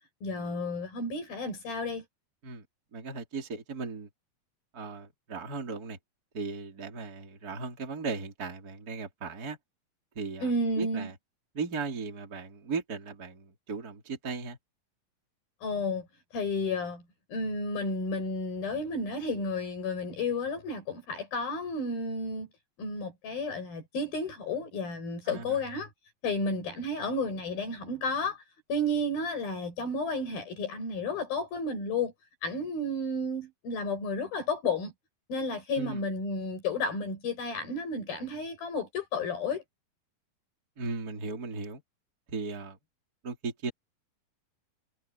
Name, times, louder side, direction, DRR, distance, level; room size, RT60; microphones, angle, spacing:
voice 1, 0.2-2.0 10.4-11.1 15.6-16.1 16.3-17.0 17.3-22.5 22.8-25.9 26.2-28.4 28.7-32.1 32.4-34.9 35.3-39.6, left 2 dB, 80° left, 9.4 m, -32 dB
voice 2, 2.9-4.1 4.7-6.0 6.3-9.6 10.2-10.5 10.8-11.2 11.5-14.6 25.3-25.6 35.8-36.0 40.8-41.8 42.3-42.8 43.2-43.7, right 4 dB, 25° right, 3.6 m, -37 dB
omnidirectional pair, 4.2 m